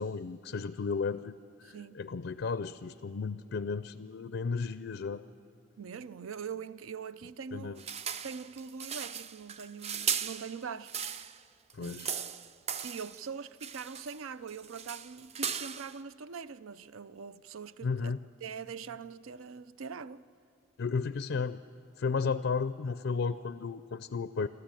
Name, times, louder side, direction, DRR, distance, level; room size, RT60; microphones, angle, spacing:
voice 1, 0.0-5.2 7.5-7.8 11.7-12.2 17.8-18.2 20.8-21.6 22.0-24.5, left 5 dB, 65° left, 0.4 m, -34 dB
voice 2, 1.6-2.0 5.8-7.8 8.2-10.9 11.8-12.1 12.8-18.1 18.4-20.2 22.2-22.5, right 6 dB, 85° right, 0.5 m, -43 dB
sound 1, 7.8-11.4 11.7-13.2 13.6-14.2 14.5-16.0, right 7 dB, 30° right, 0.4 m, -37 dB
27.5 x 13.5 x 9.0 m
head